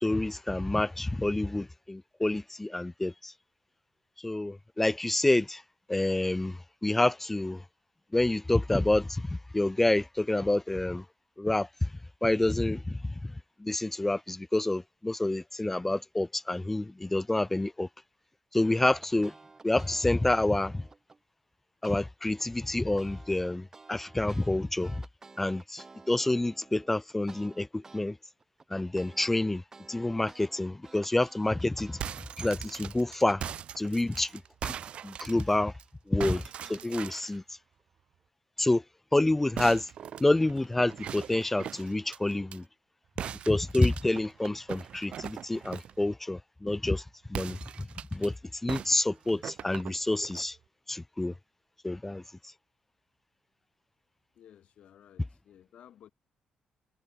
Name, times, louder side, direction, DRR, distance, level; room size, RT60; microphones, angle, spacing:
voice 1, 0.0-3.3 4.2-5.6 5.9-7.6 8.1-11.0 11.4-11.9 12.2-13.3 13.6-17.9 18.5-19.3 19.6-20.8 21.8-24.9 25.4-28.2 28.7-29.6 29.9-32.0 32.4-33.4 33.8-34.3 34.6-34.7 35.0-35.7 36.1-36.4 36.7-37.4 38.6-38.8 39.1-39.9 40.2-42.6 43.5-47.0 47.3-48.3 48.6-50.6 50.9-51.3 51.8-52.2, left 2 dB, 10° left, 0.4 m, -28 dB
sound 1, 18.8-21.2 21.8-22.0 22.4-28.0 28.4-33.3, right 3 dB, 20° right, 7.8 m, -53 dB
sound 2, 31.8-35.8 36.2-37.4 39.5-42.6 43.2-46.0 47.3-48.3 48.7-50.5, right 9 dB, 55° right, 2.3 m, -40 dB
voice 2, 54.3-56.1, left 10 dB, 60° left, 4.9 m, -55 dB
cardioid pair, 140°, 2 cm